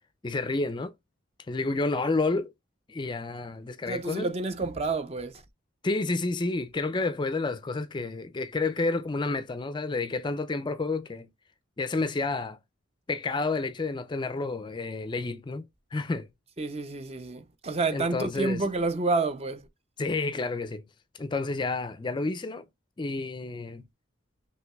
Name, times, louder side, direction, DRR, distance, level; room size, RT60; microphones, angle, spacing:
voice 1, 0.2-0.9 1.5-2.5 2.9-4.3 5.8-11.3 11.8-12.6 13.1-15.6 15.9-16.3 17.9-18.6 20.0-20.8 21.1-22.6 23.0-23.8, left 3 dB, 25° left, 0.4 m, -30 dB
voice 2, 3.9-5.4 16.6-19.7, right 3 dB, 30° right, 0.5 m, -29 dB
5.7 x 3.0 x 2.2 m
head